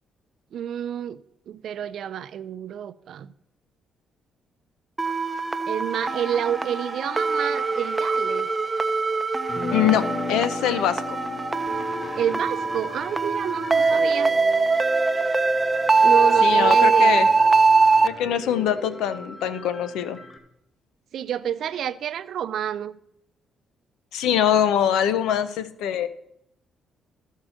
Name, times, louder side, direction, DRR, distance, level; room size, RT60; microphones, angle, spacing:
voice 1, 0.5-1.2 1.5-3.3 5.7-8.5 12.2-14.3 16.0-17.3 21.1-23.0, right 9 dB, 70° right, 0.5 m, -29 dB
sound 1, 5.0-18.1, right 4 dB, 15° right, 0.7 m, -22 dB
sound 2, 9.5-15.5, left 3 dB, 40° left, 2.1 m, -35 dB
voice 2, 9.7-11.2 16.4-17.3 18.0-20.2 24.1-26.1, left 9 dB, 90° left, 0.7 m, -23 dB
Piano, 11.7-20.4, left 1 dB, 20° left, 1.3 m, -39 dB
13.5 x 4.6 x 6.3 m
cardioid pair, 90°, 0 cm